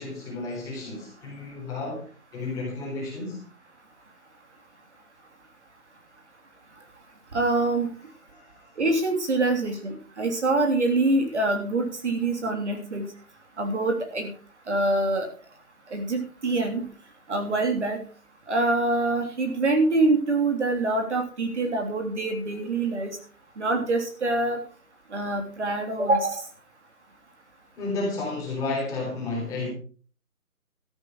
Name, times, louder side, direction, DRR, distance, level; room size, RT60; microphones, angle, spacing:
voice 1, 0.0-2.0 2.3-3.4 8.3-8.8 27.8-29.7, left 3 dB, 5° left, 3.7 m, -32 dB
voice 2, 7.3-7.9 8.8-13.1 13.6-14.3 14.7-15.3 15.9-16.8 17.3-18.0 18.5-23.2 23.6-24.6 25.1-26.4, right 2 dB, 50° right, 3.3 m, -25 dB
13.5 x 11.0 x 4.6 m
figure-of-eight pair, 160°, 45 cm